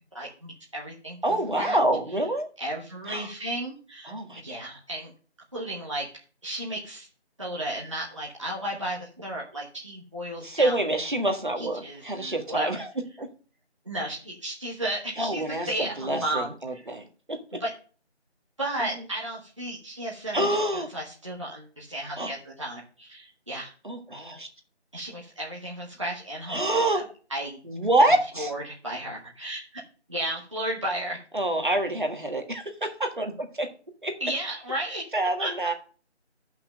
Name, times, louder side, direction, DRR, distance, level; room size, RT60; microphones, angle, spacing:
voice 1, 0.1-1.8 2.6-5.1 5.5-6.1 6.4-7.1 7.4-10.8 11.6-12.8 13.8-16.8 17.6-17.7 18.6-23.7 24.9-26.6 26.9-27.0 27.3-27.6 28.4-29.8 30.1-31.2 34.2-35.0 35.4-35.5, right 1 dB, 30° right, -4 dB, 1.2 m, -34 dB
voice 2, 1.2-2.5 3.1-3.3 4.1-4.6 10.4-12.9 13.2-13.3 15.2-17.4 20.3-20.9 22.2-22.3 23.8-24.5 26.5-27.0 27.6-28.5 31.3-33.3 33.6-33.7 34.0-34.2 35.1-35.7, right 1 dB, 45° right, 4 dB, 1.7 m, -26 dB
9.7 x 5.8 x 5.2 m, 0.39 s
figure-of-eight pair, 175°, 34 cm